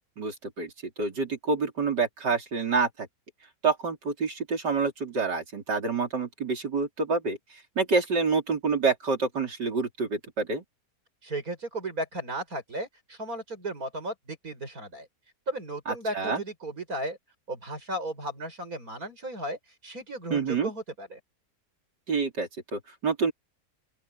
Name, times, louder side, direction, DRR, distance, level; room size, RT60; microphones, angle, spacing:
voice 1, 0.2-0.7 1.0-3.1 3.6-10.6 15.9-16.4 20.3-20.7 22.1-23.3, right 4 dB, 85° right, 4.4 m, -27 dB
voice 2, 11.2-15.1 15.5-17.2 17.5-21.2, right 1 dB, 55° right, 7.1 m, -35 dB
open air
omnidirectional pair, 1.8 m